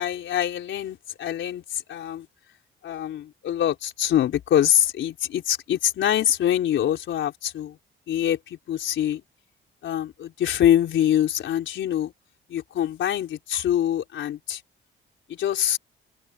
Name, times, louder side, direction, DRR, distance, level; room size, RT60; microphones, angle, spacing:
voice 1, 0.0-2.3 2.8-7.8 8.1-9.2 9.8-12.1 12.5-14.6 15.3-15.8, left 11 dB, 75° left, 4.3 m, -24 dB
open air
cardioid pair, 90°, 20 cm